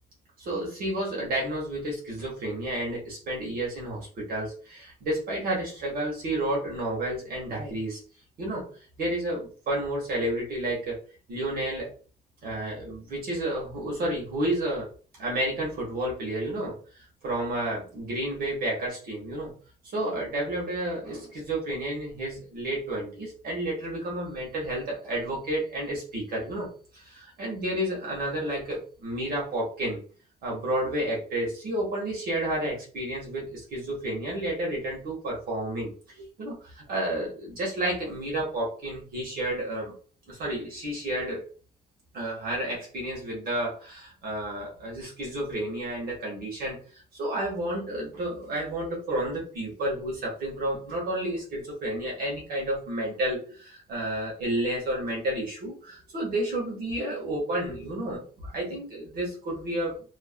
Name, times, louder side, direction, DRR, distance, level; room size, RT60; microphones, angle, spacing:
voice 1, 0.4-8.0 8.4-8.6 9.0-11.0 11.3-11.9 12.4-14.9 15.2-16.7 17.2-19.5 19.9-30.0 30.4-35.9 36.2-39.9 40.3-41.4 42.1-60.1, right 1 dB, 65° right, -3 dB, 1.0 m, -31 dB
2.5 x 2.0 x 2.4 m, 0.40 s
wide cardioid pair, 175°, 16 cm